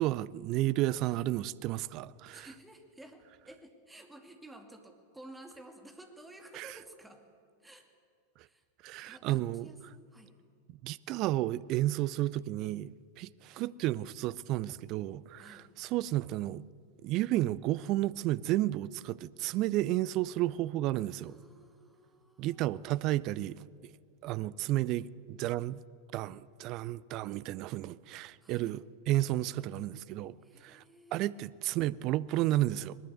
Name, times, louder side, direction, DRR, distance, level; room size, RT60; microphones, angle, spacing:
voice 1, 0.0-2.5 6.5-6.7 8.8-9.7 10.7-16.6 17.0-21.4 22.4-23.6 24.2-25.8 26.1-30.4 30.6-30.8 31.1-33.0, right 15 dB, 40° right, 0.5 m, -32 dB
voice 2, 2.3-7.2 7.6-7.9 8.4-10.4 13.5-13.8 15.4-15.7 21.1-23.2 28.4-28.7 30.4-31.4, right 1 dB, 5° right, 2.5 m, -54 dB
20.5 x 20.0 x 8.2 m
figure-of-eight pair, 90°, 0 cm